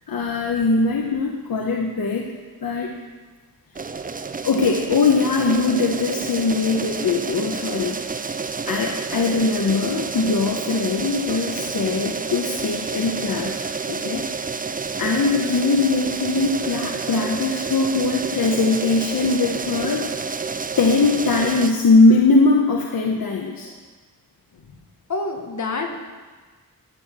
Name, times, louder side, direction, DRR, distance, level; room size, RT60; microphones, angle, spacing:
voice 1, 0.1-2.3 2.6-2.9 4.4-8.0 8.7-13.6 13.9-14.7 15.0-20.0 20.8-23.7, left 3 dB, 75° left, 0 dB, 1.1 m, -21 dB
sound 1, 3.7-21.7, right 5 dB, 25° right, 0.5 m, -29 dB
voice 2, 25.1-26.0, left 3 dB, 55° left, 3 dB, 1.7 m, -27 dB
13.0 x 6.6 x 7.2 m, 1.4 s
wide cardioid pair, 125°, 35 cm